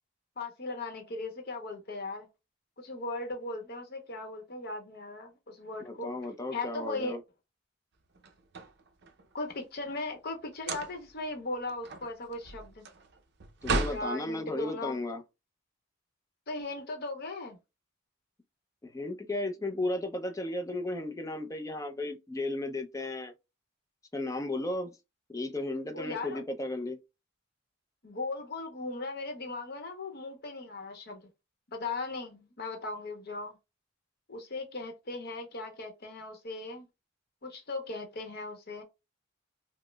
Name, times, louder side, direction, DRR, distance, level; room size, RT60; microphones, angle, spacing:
voice 1, 0.4-2.3 2.8-6.1 6.5-7.2 9.3-12.9 13.9-15.0 16.5-17.6 25.9-26.4 28.0-31.2 31.7-33.6 34.3-36.9 37.4-38.8, left 2 dB, 50° left, 0.8 m, -38 dB
voice 2, 5.8-7.2 13.6-15.2 18.8-23.3 24.1-25.0 25.3-27.0, left 2 dB, 15° left, 0.4 m, -34 dB
sound 1, 8.2-9.3 10.5-11.2 11.6-14.1, right 3 dB, 55° right, 0.5 m, -35 dB
5.0 x 2.0 x 2.2 m
head